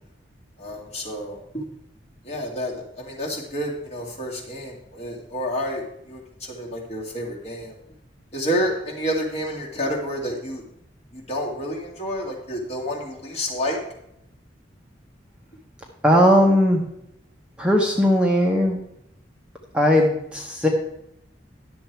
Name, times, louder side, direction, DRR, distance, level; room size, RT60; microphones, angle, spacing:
voice 1, 0.6-1.7 2.2-7.7 8.3-10.6 11.1-13.8, equal, 35° left, -2 dB, 2.1 m, -29 dB
voice 2, 16.0-16.8 17.6-18.8 19.7-20.7, equal, 5° right, 0 dB, 1.0 m, -18 dB
10.5 x 7.1 x 4.5 m, 0.78 s
head